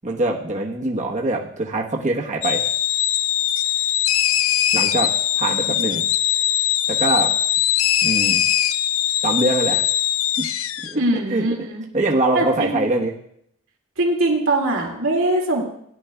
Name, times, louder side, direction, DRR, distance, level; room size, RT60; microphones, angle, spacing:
voice 1, 0.0-2.6 4.7-6.0 6.9-7.3 8.0-8.4 9.2-9.8 10.4-10.5 10.9-11.0 11.3-11.5 11.9-13.1, right 2 dB, 35° right, -1 dB, 1.1 m, -23 dB
sound 1, 2.4-10.9, left 11 dB, 85° left, 0.5 m, -21 dB
voice 2, 11.0-11.8 12.3-12.7 14.0-15.6, right 2 dB, 80° right, 1 dB, 2.2 m, -21 dB
17.5 x 11.0 x 2.3 m, 0.71 s
head